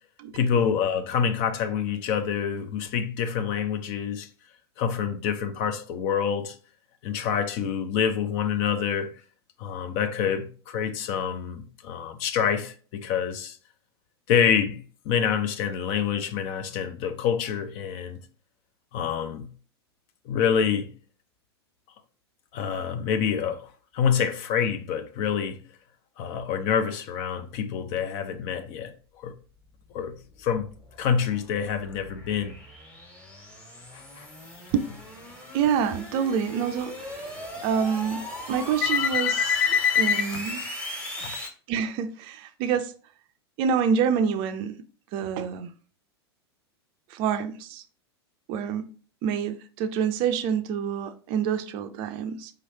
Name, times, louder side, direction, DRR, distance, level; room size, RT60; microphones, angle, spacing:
voice 1, 0.3-4.3 4.8-6.6 7.0-9.1 9.6-13.6 14.3-18.2 18.9-19.5 20.3-20.9 22.5-23.7 23.9-25.6 26.2-28.9 29.2-29.3 29.9-30.7 31.0-32.6 33.9-34.3 38.8-40.3 41.2-41.4, left 7 dB, 45° left, 0.6 m, -26 dB
sound 1, 30.2-41.5, left 1 dB, 10° left, 1.4 m, -38 dB
voice 2, 35.5-37.3 37.6-39.4 40.0-40.6 41.7-42.9 43.6-44.8 45.1-45.7 47.1-47.8 48.5-48.9 49.2-52.5, right 7 dB, 40° right, 0.4 m, -27 dB
4.9 x 3.1 x 2.8 m
figure-of-eight pair, 90°, 14 cm